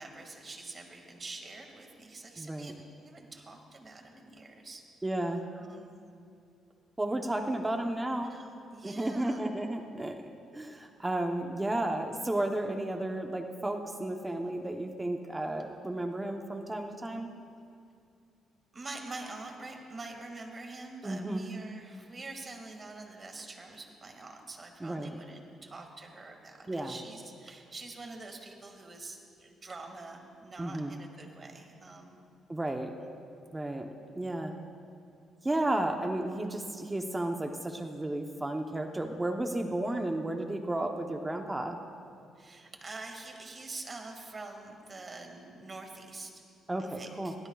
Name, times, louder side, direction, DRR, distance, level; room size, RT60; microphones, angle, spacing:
voice 1, 0.0-4.9 5.5-5.9 8.2-9.4 18.7-32.2 42.4-46.4 46.8-47.3, right 3 dB, 35° right, 3 dB, 2.2 m, -45 dB
voice 2, 2.4-2.7 5.0-5.4 7.0-8.3 8.8-17.3 21.0-21.4 24.8-25.2 26.7-26.9 30.6-30.9 32.5-32.9 33.5-34.5 35.4-41.8 46.7-47.3, right 1 dB, 15° right, 4 dB, 0.9 m, -33 dB
20.5 x 18.0 x 2.4 m, 2.4 s
cardioid pair, 90°, 0 cm